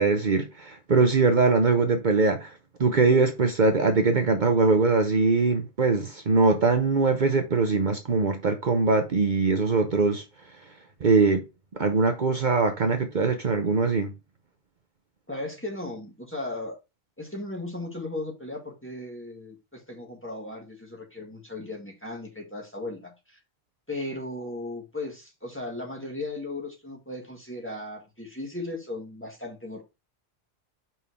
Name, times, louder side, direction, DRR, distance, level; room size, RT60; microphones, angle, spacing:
voice 1, 0.0-2.5 2.8-10.2 11.0-11.4 11.7-14.1, right 4 dB, 50° right, 0.9 m, -22 dB
voice 2, 15.3-16.8 17.2-23.4 23.9-29.8, left 2 dB, 10° left, 1.9 m, -36 dB
5.4 x 4.5 x 4.6 m
omnidirectional pair, 1.1 m